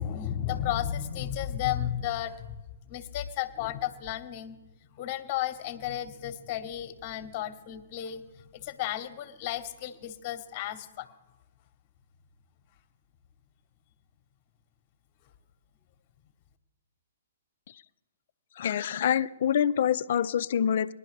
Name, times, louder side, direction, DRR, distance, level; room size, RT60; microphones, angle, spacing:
voice 1, 0.0-2.5 2.9-4.6 4.9-8.2 8.5-11.1, left 11 dB, 40° left, 10 dB, 1.1 m, -33 dB
voice 2, 18.6-20.9, left 9 dB, 55° left, 16 dB, 0.4 m, -26 dB
20.0 x 11.5 x 3.3 m, 1.1 s
hypercardioid pair, 130°, 0 cm